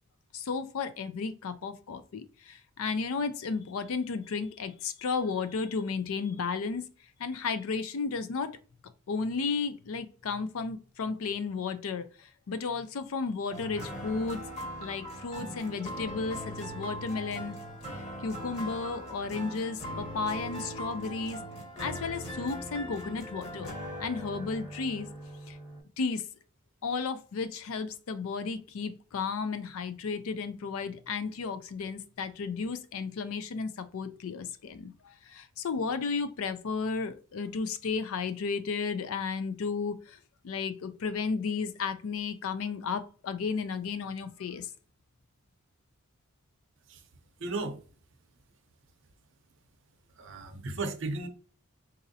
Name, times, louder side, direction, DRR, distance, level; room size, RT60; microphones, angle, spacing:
voice 1, 0.3-6.8 7.2-8.6 9.1-14.4 14.8-17.6 18.2-21.4 21.8-23.7 24.0-25.1 25.5-25.6 26.0-26.2 26.8-44.7, left 5 dB, 75° left, 0.4 m, -33 dB
sound 1, 13.5-25.8, equal, 30° left, 1.2 m, -40 dB
voice 2, 47.4-47.8 50.2-51.3, right 3 dB, 55° right, 0.6 m, -34 dB
4.0 x 2.6 x 2.6 m
head